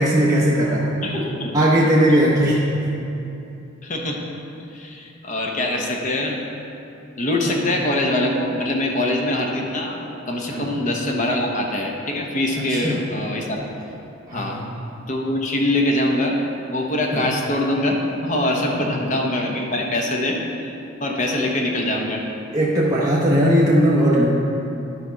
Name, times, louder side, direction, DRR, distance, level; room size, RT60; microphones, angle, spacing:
voice 1, 0.0-0.9 1.5-2.7 10.5-10.7 12.6-13.0 14.3-14.6 17.1-17.3 22.5-24.3, equal, 20° right, -6 dB, 0.9 m, -18 dB
voice 2, 1.0-1.7 2.1-2.2 3.8-4.2 4.7-6.4 7.2-13.7 14.3-14.6 15.1-16.4 16.7-20.4 21.0-22.2, left 1 dB, 40° left, 0 dB, 0.9 m, -23 dB
11.0 x 4.4 x 5.7 m, 2.8 s
head